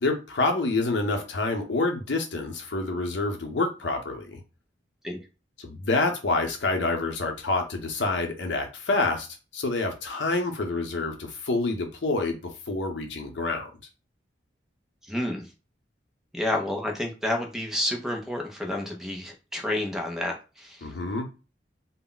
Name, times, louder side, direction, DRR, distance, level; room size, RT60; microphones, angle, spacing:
voice 1, 0.0-4.4 5.6-9.3 9.5-12.4 12.7-13.7 20.8-21.3, left 3 dB, 90° left, 0.7 m, -27 dB
voice 2, 15.1-15.4 16.3-20.8, left 1 dB, 5° right, 0.5 m, -30 dB
2.2 x 2.0 x 3.8 m
head